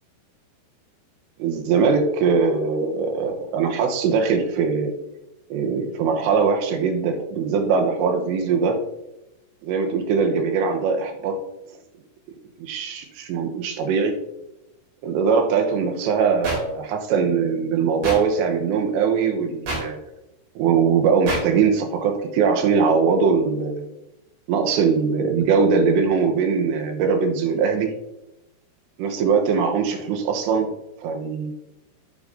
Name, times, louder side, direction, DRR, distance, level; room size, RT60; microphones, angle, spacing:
voice 1, 1.4-4.9 5.5-8.8 9.6-11.4 12.6-14.2 15.0-20.0 20.6-23.9 24.5-27.9 29.0-30.7 31.0-31.5, right 5 dB, 80° right, 5 dB, 3.1 m, -21 dB
sound 1, 16.4-16.6 18.0-18.2 19.7-19.8 21.3-21.4, right 1 dB, 65° right, 5.2 m, -26 dB
10.0 x 8.9 x 2.7 m, 0.92 s
omnidirectional pair, 5.3 m